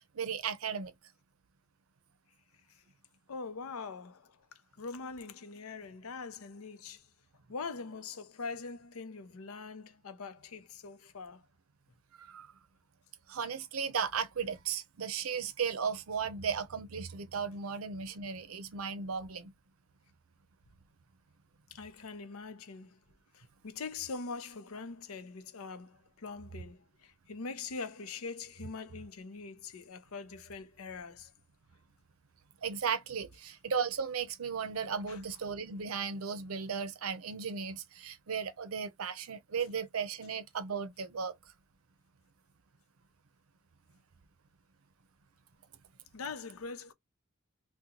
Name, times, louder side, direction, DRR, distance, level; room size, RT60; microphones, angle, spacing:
voice 1, 0.1-0.9 12.1-12.5 13.3-19.5 32.6-41.3, right 6 dB, 85° right, 0.6 m, -36 dB
voice 2, 3.3-7.1 7.5-11.4 18.1-18.2 21.7-23.0 23.3-31.3 35.1-35.2 46.1-46.9, left 4 dB, 85° left, 0.6 m, -43 dB
2.9 x 2.2 x 3.7 m
head